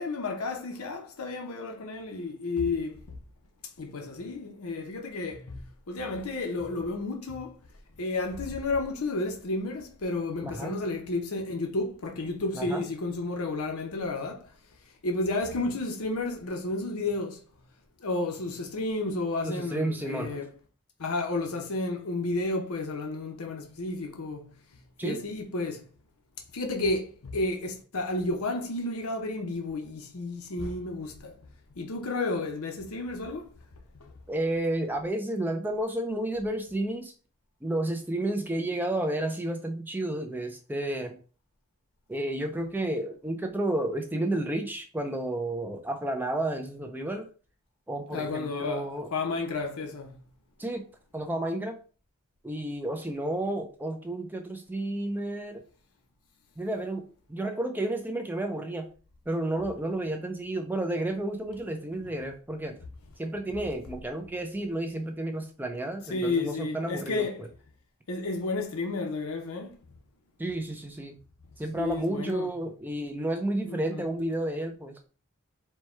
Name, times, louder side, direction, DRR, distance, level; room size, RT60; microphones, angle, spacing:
voice 1, 0.0-3.0 3.8-5.6 5.9-7.6 8.0-14.4 15.0-17.4 18.0-20.5 21.0-24.5 25.0-25.8 26.5-31.3 31.8-33.5 34.0-34.1 48.1-50.2 66.1-67.4 68.1-69.7 71.8-72.5 73.7-74.0, left 2 dB, 85° left, 0.8 m, -32 dB
voice 2, 10.4-10.8 12.5-12.8 19.4-20.4 25.0-25.2 34.3-37.1 37.6-41.2 42.1-47.3 47.9-49.1 50.6-50.8 51.1-51.8 52.4-55.6 56.6-58.9 59.3-62.8 63.2-67.5 70.4-71.2 71.6-75.0, right 1 dB, 10° right, 0.3 m, -31 dB
4.5 x 2.2 x 4.3 m
head